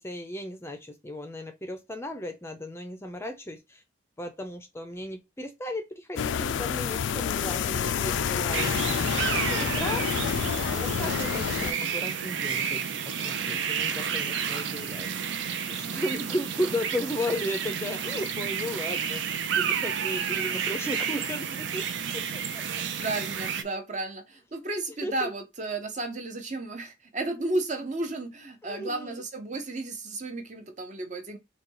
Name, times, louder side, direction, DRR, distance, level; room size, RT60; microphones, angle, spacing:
voice 1, 0.0-3.8 4.2-8.8 9.3-10.1 10.7-15.2 15.7-22.2 22.5-22.6 25.0-25.3 28.6-29.2, left 1 dB, 15° left, 0.5 m, -35 dB
sound 1, 6.2-11.7, left 7 dB, 75° left, 0.3 m, -28 dB
sound 2, 8.5-23.6, right 7 dB, 75° right, 0.5 m, -31 dB
voice 2, 23.0-31.4, right 2 dB, 40° right, 0.8 m, -33 dB
3.9 x 2.3 x 4.6 m
head